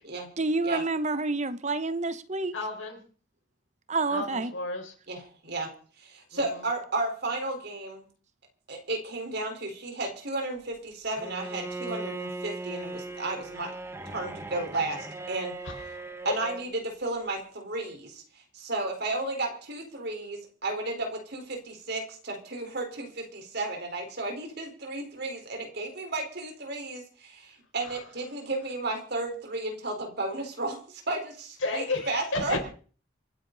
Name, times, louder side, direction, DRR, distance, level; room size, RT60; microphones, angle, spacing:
voice 1, 0.4-2.5 3.9-4.5, right 3 dB, 35° right, 1.0 m, -28 dB
voice 2, 2.5-3.0 4.1-4.9 6.5-6.6 15.6-15.8 16.2-16.3 27.8-28.0 31.6-32.7, left 2 dB, 80° left, 4.9 m, -32 dB
voice 3, 5.1-5.7 6.0-8.0 8.7-13.7 14.1-15.5 16.2-18.2 18.5-32.6, right 2 dB, 55° right, 4.4 m, -33 dB
Bowed string instrument, 11.2-16.7, right 2 dB, 15° right, 1.1 m, -38 dB
27.0 x 9.8 x 4.1 m
head